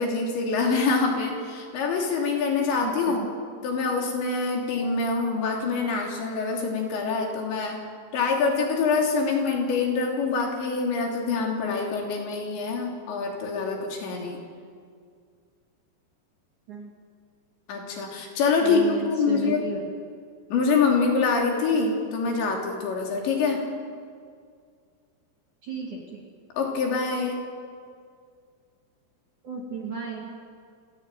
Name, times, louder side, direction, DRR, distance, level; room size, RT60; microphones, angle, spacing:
voice 1, 0.0-3.2 3.6-7.8 8.1-14.4 17.7-19.7 20.5-23.6 26.6-27.4, left 4 dB, 60° left, 1 dB, 5.3 m, -25 dB
voice 2, 2.8-3.3 16.7-16.9 18.6-20.0 25.6-26.2 29.4-30.3, right 5 dB, 50° right, 0 dB, 2.6 m, -34 dB
28.5 x 15.0 x 9.1 m, 2.1 s
omnidirectional pair, 5.9 m